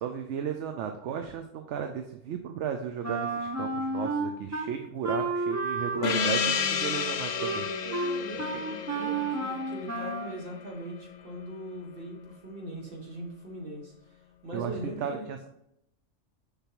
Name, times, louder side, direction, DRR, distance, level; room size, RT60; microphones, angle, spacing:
voice 1, 0.0-7.7 8.5-8.6 14.5-15.5, right 8 dB, 70° right, 6 dB, 0.9 m, -35 dB
Wind instrument woodwind instrument, 3.0-4.7 5.0-10.4, right 2 dB, 20° right, 0.5 m, -32 dB
Gong, 6.0-11.1, left 6 dB, 70° left, 0.4 m, -31 dB
voice 2, 7.8-15.3, right 1 dB, 45° right, 0 dB, 1.7 m, -41 dB
6.8 x 5.7 x 2.9 m, 0.78 s
omnidirectional pair, 1.3 m